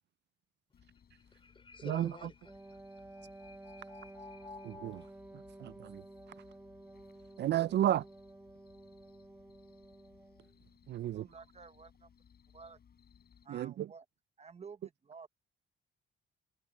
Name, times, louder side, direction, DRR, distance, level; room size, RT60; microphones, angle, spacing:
sound 1, 0.7-13.5, left 7 dB, 50° left, 5.5 m, -64 dB
voice 1, 1.2-5.1, left 4 dB, 25° left, 3.6 m, -52 dB
voice 2, 1.8-2.3 4.6-5.0 5.3-6.0 7.4-8.0 10.9-11.3 13.5-13.9, right 12 dB, 60° right, 0.4 m, -33 dB
Wind instrument woodwind instrument, 2.4-10.5, right 2 dB, 10° right, 1.1 m, -53 dB
voice 3, 11.0-12.1 12.5-12.8 13.4-14.0 14.4-15.3, right 5 dB, 35° right, 0.8 m, -52 dB
cardioid pair, 90°, 20 cm